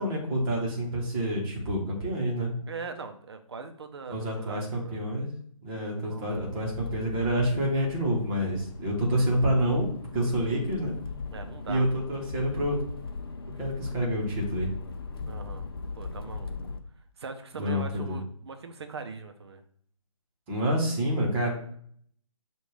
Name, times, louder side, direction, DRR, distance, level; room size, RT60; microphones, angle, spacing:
voice 1, 0.0-2.5 4.1-5.3 5.6-10.9 11.7-12.8 13.6-14.7 17.6-18.2 20.5-21.5, equal, 15° right, -3 dB, 1.1 m, -28 dB
voice 2, 2.7-5.0 6.1-6.4 11.3-12.0 15.2-15.7 16.0-16.5 17.2-19.6, right 4 dB, 50° right, 6 dB, 0.7 m, -41 dB
Accelerating revving vroom, 6.3-16.8, left 4 dB, 45° left, 0.5 m, -39 dB
6.5 x 2.5 x 3.3 m, 0.62 s
figure-of-eight pair, 155°, 18 cm